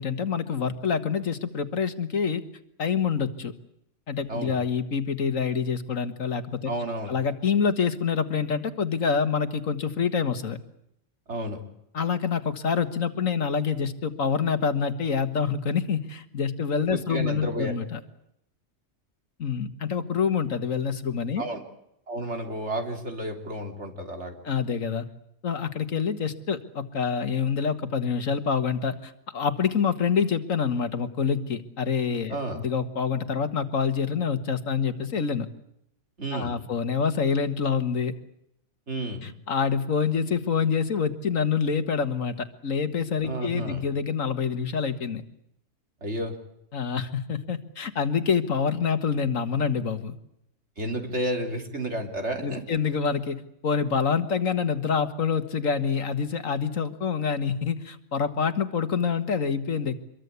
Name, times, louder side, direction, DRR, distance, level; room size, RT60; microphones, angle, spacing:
voice 1, 0.0-2.4 2.8-3.5 4.1-6.7 7.1-10.6 11.9-18.0 19.4-21.4 24.4-25.1 25.4-35.5 36.3-38.1 39.2-45.2 46.7-50.1 52.4-60.0, left 6 dB, 90° left, 10 dB, 2.0 m, -26 dB
voice 2, 6.7-7.1 11.3-11.6 16.9-17.7 21.4-21.6 22.1-24.4 32.3-32.6 36.2-36.6 38.9-39.3 43.2-43.8 46.0-46.3 50.8-52.6, right 1 dB, 60° right, 4 dB, 3.7 m, -31 dB
25.5 x 22.5 x 8.3 m, 0.77 s
omnidirectional pair, 1.3 m